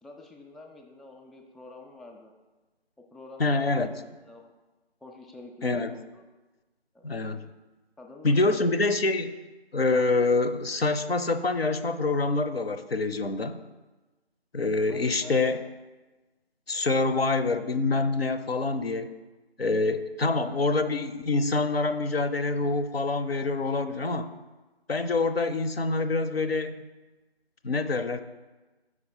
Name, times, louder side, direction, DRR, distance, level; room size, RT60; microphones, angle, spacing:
voice 1, 0.0-2.3 3.1-3.8 4.2-4.5 5.0-6.3 6.9-7.1 8.0-8.7 14.9-15.6, left 2 dB, ahead, 2 dB, 0.3 m, -47 dB
voice 2, 3.4-3.9 5.6-5.9 7.0-7.5 8.2-9.4 9.7-13.6 14.5-15.6 16.7-19.1 19.6-24.3 24.9-26.8 27.6-28.2, left 3 dB, 65° left, 9 dB, 0.5 m, -26 dB
4.9 x 4.7 x 5.6 m, 1.2 s
figure-of-eight pair, 165°, 33 cm